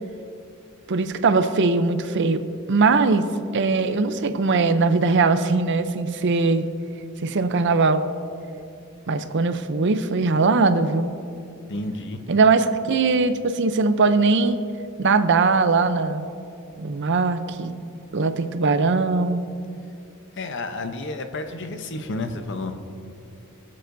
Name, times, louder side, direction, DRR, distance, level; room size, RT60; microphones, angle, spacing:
voice 1, 0.9-2.4 2.7-3.2 3.5-6.7 7.2-8.0 9.1-11.1 12.3-14.6 15.0-16.3 16.8-17.7 18.1-19.4, right 4 dB, 55° right, 10 dB, 0.6 m, -20 dB
voice 2, 11.7-12.2 20.3-22.8, left 2 dB, 60° left, 7 dB, 0.8 m, -31 dB
22.0 x 7.6 x 2.6 m, 2.5 s
head